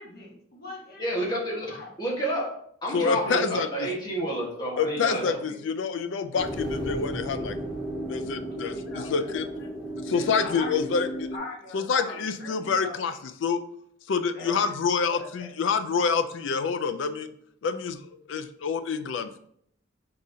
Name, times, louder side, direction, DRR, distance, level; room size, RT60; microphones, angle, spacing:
voice 1, 0.0-1.9 8.4-9.4 10.1-11.0 11.3-13.0 14.3-14.6 15.1-15.5, left 3 dB, 50° left, -2 dB, 1.1 m, -41 dB
voice 2, 1.0-2.5 2.8-5.6, right 1 dB, 20° left, -4 dB, 1.3 m, -30 dB
voice 3, 2.9-3.9 4.8-7.6 8.1-9.5 10.0-11.3 11.7-13.6 14.1-17.3 17.6-19.4, left 5 dB, 65° left, 10 dB, 0.4 m, -27 dB
sound 1, 6.4-11.4, equal, 5° left, 0.9 m, -34 dB
4.9 x 3.9 x 2.7 m, 0.68 s
head